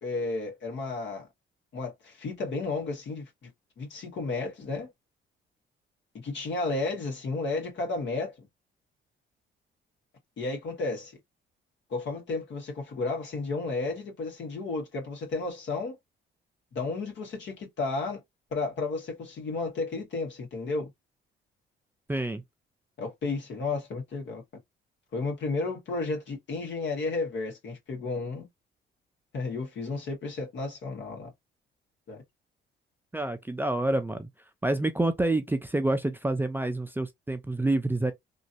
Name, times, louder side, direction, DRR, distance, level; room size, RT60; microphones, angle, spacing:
voice 1, 0.0-1.3 1.7-3.5 3.8-4.9 6.2-8.5 10.4-11.2 11.9-16.0 16.7-18.2 18.5-20.9 23.0-24.4 25.1-28.5 29.3-31.3 32.1-32.2, left 3 dB, 65° left, 1.6 m, -32 dB
voice 2, 22.1-22.4 33.1-34.3 34.6-38.1, right 2 dB, 10° right, 0.4 m, -27 dB
3.0 x 2.7 x 2.6 m
cardioid pair, 90°, 20 cm